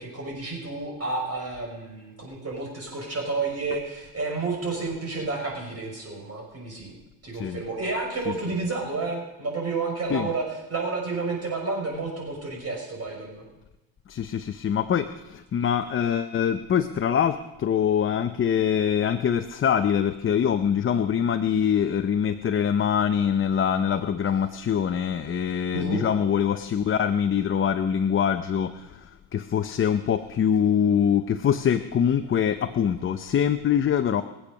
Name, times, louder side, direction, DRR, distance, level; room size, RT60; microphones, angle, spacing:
voice 1, 0.0-6.9 7.2-10.4 10.7-13.4 25.7-26.1, right 3 dB, 30° right, -1 dB, 6.1 m, -30 dB
voice 2, 14.1-34.2, left 8 dB, 25° left, 8 dB, 0.6 m, -24 dB
22.0 x 8.6 x 6.5 m, 1.0 s
cardioid pair, 120°, 49 cm